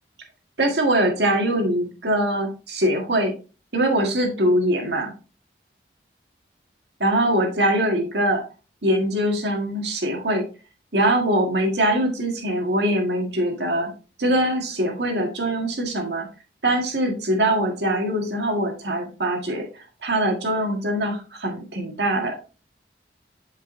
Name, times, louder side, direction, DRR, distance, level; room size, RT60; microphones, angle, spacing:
voice 1, 0.6-3.3 3.7-5.1 7.0-8.4 8.8-10.4 10.9-13.9 14.2-16.3 16.6-19.7 20.0-22.3, right 1 dB, 80° right, 2 dB, 1.7 m, -22 dB
7.8 x 5.2 x 2.6 m, 0.33 s
head